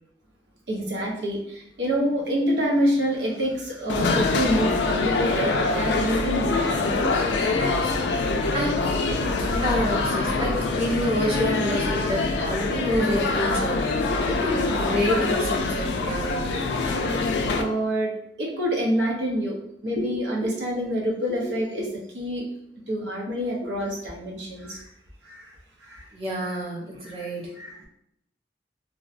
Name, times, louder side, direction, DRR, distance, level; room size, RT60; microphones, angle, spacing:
voice 1, 0.7-7.2 7.6-7.7 17.6-19.6 19.8-22.5 22.9-24.9 25.2-25.5 25.8-27.9, equal, 80° right, -1 dB, 0.6 m, -27 dB
sound 1, 3.9-17.6, left 3 dB, 75° left, 0.3 m, -24 dB
voice 2, 8.5-8.9 9.6-13.8 14.3-16.6 26.1-27.5, equal, 35° right, -3 dB, 0.7 m, -27 dB
2.6 x 2.1 x 2.4 m, 0.76 s
head